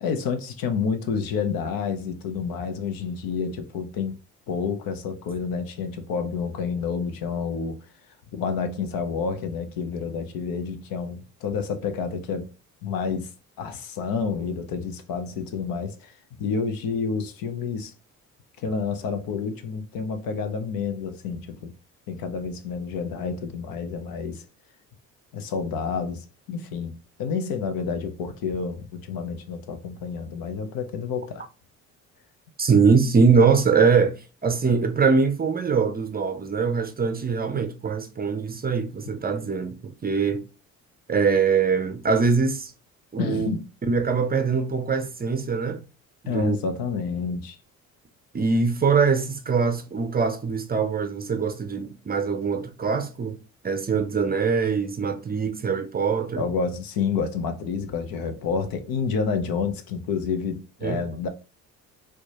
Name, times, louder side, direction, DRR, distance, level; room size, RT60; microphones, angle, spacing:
voice 1, 0.0-4.2 4.5-7.8 8.3-12.5 12.8-13.3 13.6-17.9 18.6-21.7 22.1-24.4 25.3-31.4 43.2-43.7 46.3-47.6 56.4-61.3, left 5 dB, 55° left, 0.8 m, -29 dB
voice 2, 32.6-40.4 41.1-42.7 43.1-43.5 43.9-45.8 46.2-46.6 48.3-53.4 53.6-56.4 60.8-61.0, right 5 dB, 20° right, 0.6 m, -23 dB
4.3 x 2.2 x 2.8 m
hypercardioid pair, 50°, 41 cm